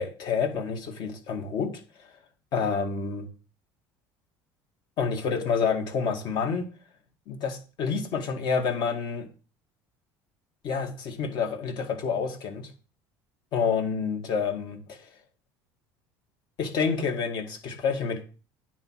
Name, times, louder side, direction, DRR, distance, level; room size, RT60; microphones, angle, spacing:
voice 1, 0.0-1.7 2.5-3.3 5.0-6.7 7.3-9.3 10.6-12.7 13.5-15.0 16.6-18.2, left 5 dB, 55° left, 5 dB, 2.0 m, -28 dB
9.5 x 4.5 x 6.4 m, 0.36 s
supercardioid pair, 115°, 9 cm